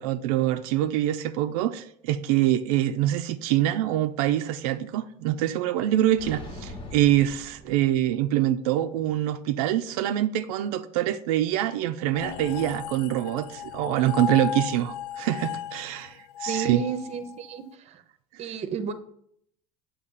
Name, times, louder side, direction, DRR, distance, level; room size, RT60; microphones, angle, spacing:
voice 1, 0.0-16.8, right 13 dB, 85° right, 0.4 m, -25 dB
sound 1, 6.2-8.4, left 1 dB, 30° left, 0.9 m, -42 dB
sound 2, 12.1-17.6, left 9 dB, 75° left, 0.4 m, -35 dB
voice 2, 16.5-18.0 18.4-18.9, right 6 dB, 35° right, 0.6 m, -32 dB
6.6 x 2.8 x 5.5 m
supercardioid pair, 115°, 19 cm